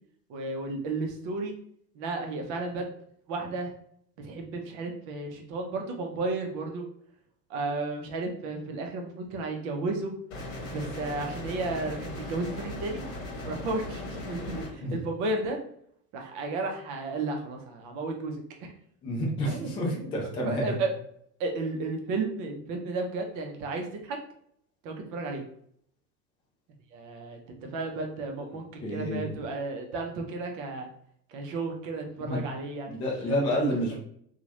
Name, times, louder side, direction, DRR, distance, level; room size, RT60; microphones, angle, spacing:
voice 1, 0.3-1.6 1.9-2.9 3.3-3.7 4.2-6.8 7.5-10.1 10.7-13.0 13.5-15.6 16.1-18.7 19.5-20.1 20.4-20.9 21.4-24.2 24.8-25.4 26.9-27.4 27.7-30.9 31.3-33.4, right 3 dB, 40° right, 3 dB, 0.7 m, -33 dB
sound 1, 10.3-14.7, left 2 dB, 55° left, 1.1 m, -38 dB
voice 2, 19.0-20.8 28.8-29.3 32.2-32.4 32.9-34.0, equal, 10° left, -1 dB, 0.3 m, -29 dB
2.8 x 2.4 x 2.8 m, 0.68 s
figure-of-eight pair, 75°, 49 cm